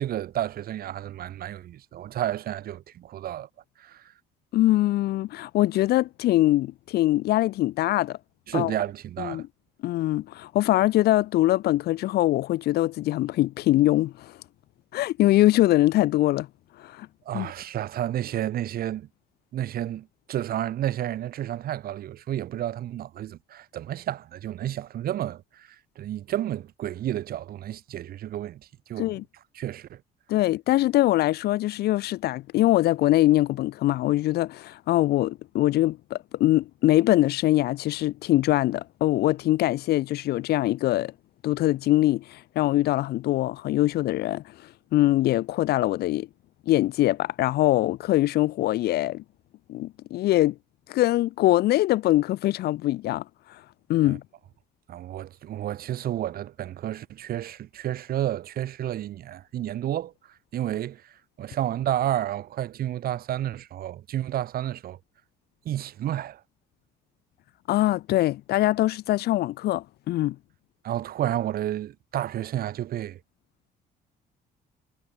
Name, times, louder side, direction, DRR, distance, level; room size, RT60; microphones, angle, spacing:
voice 1, 0.0-3.5 3.8-4.0 8.5-9.4 17.3-19.1 19.5-25.7 26.0-28.6 28.9-29.1 29.5-30.0 54.1-54.2 54.9-60.1 60.5-61.1 61.4-65.0 65.7-66.4 70.8-73.2, right 12 dB, 65° right, 4.0 m, -31 dB
voice 2, 4.5-8.2 8.5-8.7 9.2-9.5 9.8-14.4 14.9-16.5 16.8-17.1 17.3-17.5 29.0-29.2 30.3-41.1 41.4-46.3 46.7-49.2 49.7-50.5 50.9-53.2 53.9-54.2 67.7-70.4, left 15 dB, 70° left, 0.8 m, -23 dB
cardioid pair, 110°, 17 cm